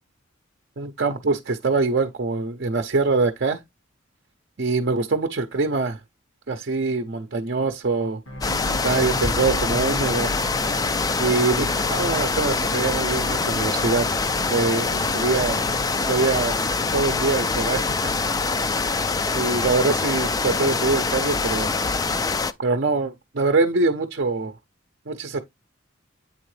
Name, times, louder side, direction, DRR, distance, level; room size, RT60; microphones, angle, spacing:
voice 1, 0.8-3.6 4.6-6.0 6.5-8.2 8.8-10.3 11.2-14.1 14.5-15.6 16.1-16.5 16.9-18.1 19.3-21.7 22.6-24.5 25.1-25.4, right 3 dB, 55° right, 0.6 m, -24 dB
sound 1, 8.3-20.6 21.2-21.3, right 2 dB, 75° left, 1.9 m, -39 dB
sound 2, 8.4-22.5, left 4 dB, 20° left, 0.3 m, -24 dB
8.5 x 3.6 x 3.2 m
head